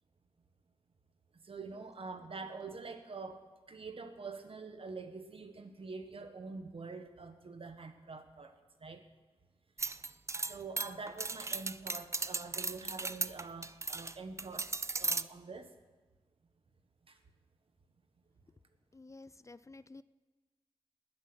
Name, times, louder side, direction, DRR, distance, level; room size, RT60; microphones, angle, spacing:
voice 1, 1.3-9.1 9.8-10.0 10.5-15.7 17.0-17.2, right 4 dB, 65° right, 7 dB, 1.4 m, -46 dB
sound 1, 9.8-14.1 14.4-15.2, right 3 dB, 30° right, 0.4 m, -36 dB
voice 2, 18.9-20.0, left 3 dB, 30° left, 16 dB, 0.4 m, -52 dB
19.5 x 9.1 x 6.3 m, 1.3 s
wide cardioid pair, 80°, 10 cm